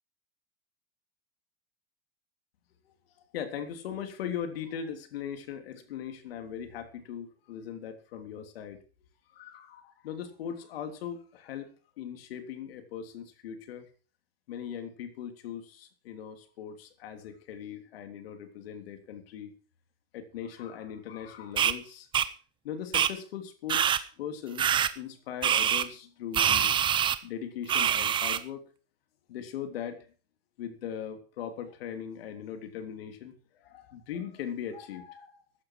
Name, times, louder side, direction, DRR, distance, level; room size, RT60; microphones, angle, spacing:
voice 1, 3.3-8.8 9.3-11.7 12.0-13.8 14.5-19.5 20.1-22.1 22.6-26.7 27.2-28.6 29.3-30.0 30.6-33.3 33.6-35.3, left 8 dB, 75° left, 7 dB, 3.4 m, -39 dB
sound 1, 21.6-21.7 22.1-22.3 22.9-23.1 23.7-24.0 24.6-24.9 25.4-25.8 26.3-27.2 27.7-28.4, right 9 dB, 15° right, 0.7 m, -25 dB
15.0 x 12.0 x 4.8 m, 0.37 s
supercardioid pair, 155°, 30 cm